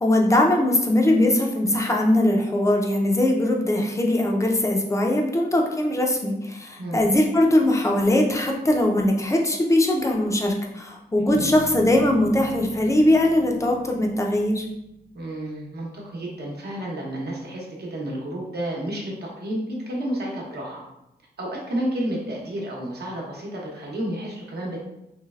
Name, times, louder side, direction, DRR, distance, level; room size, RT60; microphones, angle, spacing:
voice 1, 0.0-14.6, left 1 dB, 20° left, 1 dB, 0.5 m, -21 dB
voice 2, 6.8-7.1 11.4-11.5 15.1-20.8 21.4-24.8, right 1 dB, 75° right, -3 dB, 0.9 m, -31 dB
Bass guitar, 11.3-15.2, left 2 dB, 75° left, 0.7 m, -40 dB
3.2 x 3.1 x 2.3 m, 0.84 s
wide cardioid pair, 135°, 17 cm